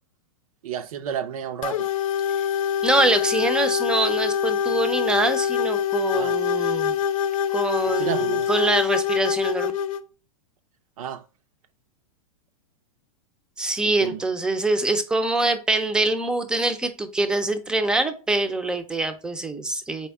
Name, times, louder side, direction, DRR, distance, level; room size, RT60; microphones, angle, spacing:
voice 1, 0.6-1.9 6.1-6.4 7.8-8.5 11.0-11.2 13.8-14.2, right 9 dB, 75° right, 0.6 m, -31 dB
sound 1, 1.6-10.0, left 8 dB, 70° left, 0.6 m, -25 dB
voice 2, 2.8-7.0 7.5-9.7 13.6-20.1, right 2 dB, 5° right, 0.4 m, -24 dB
4.3 x 3.4 x 3.4 m
supercardioid pair, 145°, 18 cm